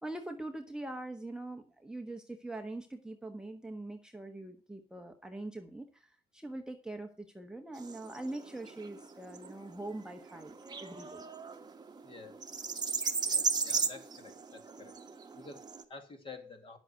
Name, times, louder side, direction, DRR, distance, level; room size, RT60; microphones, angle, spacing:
voice 1, 0.0-10.5 10.8-11.2, right 2 dB, 5° right, 4 dB, 1.2 m, -43 dB
sound 1, 7.8-15.8, right 4 dB, 25° right, 1.4 m, -36 dB
voice 2, 12.0-12.3 13.2-14.9 15.4-16.8, left 3 dB, 30° left, 5 dB, 2.5 m, -50 dB
10.5 x 7.9 x 6.0 m, 0.36 s
cardioid pair, 110°, 17 cm